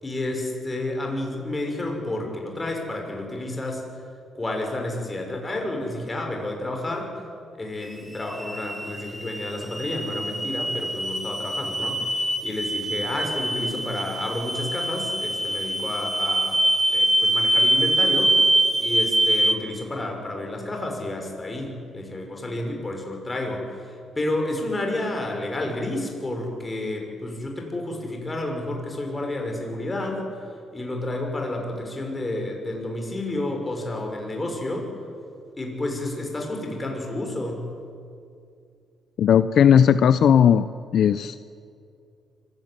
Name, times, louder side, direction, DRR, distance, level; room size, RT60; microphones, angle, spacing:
voice 1, 0.0-3.9 4.3-7.1 7.5-12.1 12.4-16.6 16.9-18.4 18.8-30.2 30.7-34.9 35.6-37.7, left 1 dB, 20° left, 2 dB, 6.3 m, -30 dB
sound 1, 7.8-19.5, right 1 dB, 10° right, 2.5 m, -24 dB
voice 2, 39.2-40.7 40.9-41.5, left 8 dB, 65° left, 13 dB, 0.6 m, -17 dB
24.5 x 16.5 x 9.8 m, 2.4 s
cardioid pair, 90°, 0 cm